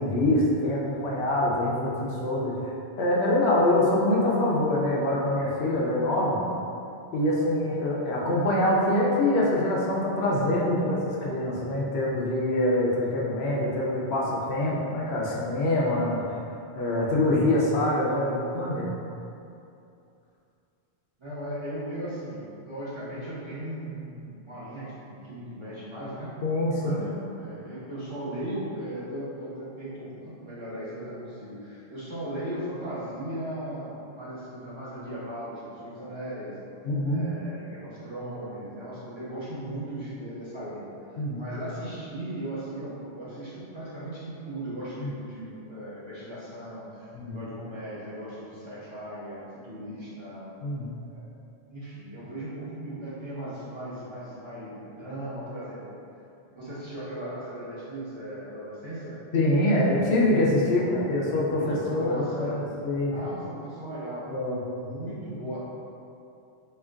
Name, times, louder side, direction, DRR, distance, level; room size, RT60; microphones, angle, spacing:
voice 1, 0.0-2.5 3.0-6.4 7.1-16.2 16.7-18.9 26.4-27.0 36.8-37.3 41.2-41.5 45.0-45.1 47.1-47.4 50.6-50.9 59.3-63.2 64.3-64.9, left 1 dB, 75° left, -5 dB, 0.9 m, -25 dB
voice 2, 21.2-26.3 26.8-36.6 37.1-40.9 41.4-50.5 51.1-51.3 51.7-55.9 56.5-59.2 60.7-62.8 63.1-64.3 64.7-65.6, right 1 dB, 30° right, -11 dB, 0.8 m, -37 dB
4.3 x 2.9 x 2.5 m, 2.7 s
omnidirectional pair, 1.1 m